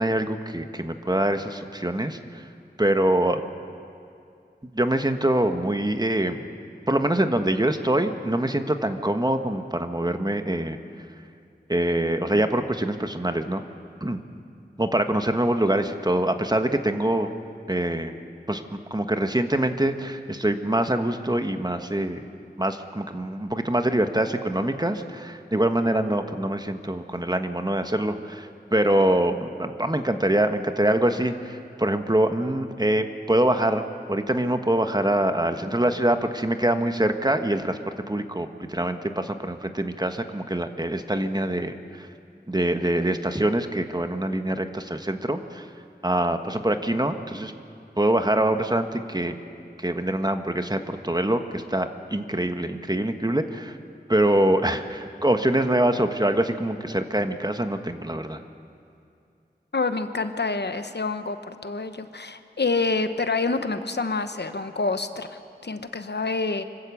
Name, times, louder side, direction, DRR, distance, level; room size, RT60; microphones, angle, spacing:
voice 1, 0.0-2.5 2.8-3.4 4.7-6.5 6.9-10.8 11.7-13.6 14.0-14.2 14.8-17.3 17.7-18.1 18.5-22.2 22.6-33.8 34.1-37.8 38.1-42.1 42.5-45.7 46.0-47.5 48.0-49.3 49.8-53.8 54.1-58.4, right 1 dB, 25° right, 7 dB, 1.2 m, -24 dB
voice 2, 59.7-66.6, left 3 dB, 75° left, 9 dB, 1.0 m, -27 dB
25.0 x 13.5 x 8.4 m, 2.5 s
wide cardioid pair, 45°, 17 cm